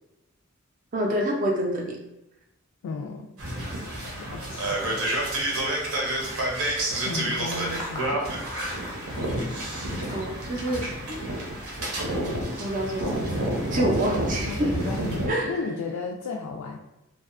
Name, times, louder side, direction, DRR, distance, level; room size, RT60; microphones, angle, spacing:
voice 1, 0.9-2.0 10.1-11.2 12.6-13.3 13.7-14.7 15.3-15.6, right 1 dB, 35° right, 0 dB, 0.4 m, -27 dB
voice 2, 2.8-3.3 4.2-4.8 7.1-8.2 14.5-16.8, left 4 dB, 80° left, 0 dB, 0.3 m, -34 dB
sound 1, 3.4-15.3, right 1 dB, 80° right, 0.7 m, -29 dB
sound 2, 7.3-11.7, left 1 dB, 20° left, 0.5 m, -42 dB
2.7 x 2.2 x 2.4 m, 0.91 s
head